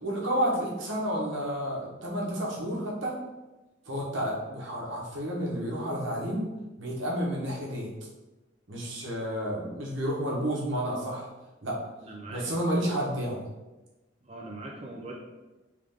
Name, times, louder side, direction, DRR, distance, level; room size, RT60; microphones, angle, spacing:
voice 1, 0.0-3.2 3.9-6.5 6.8-7.9 8.7-11.3 11.6-11.8 12.3-13.5, equal, 80° right, -3 dB, 1.1 m, -30 dB
voice 2, 12.0-12.8 13.3-13.4 14.2-15.2, right 2 dB, 35° right, -2 dB, 0.6 m, -42 dB
3.4 x 3.3 x 3.6 m, 1.1 s
head